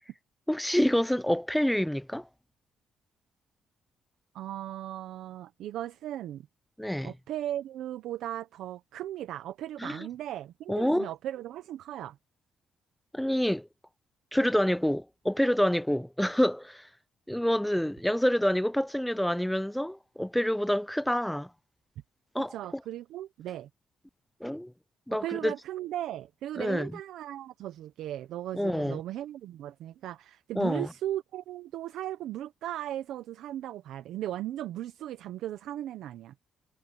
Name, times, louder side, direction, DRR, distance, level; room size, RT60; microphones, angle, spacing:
voice 1, 0.5-2.3 6.8-7.1 9.8-10.1 10.7-11.1 13.1-13.7 14.3-16.9 17.3-21.5 22.3-22.5 24.4-24.7 25.1-25.5 26.6-26.9 28.5-29.0 30.6-30.9, equal, 5° left, 0.4 m, -27 dB
voice 2, 4.3-6.5 7.0-12.2 22.4-23.7 25.1-36.3, right 12 dB, 85° right, 0.9 m, -37 dB
cardioid pair, 90°, 0 cm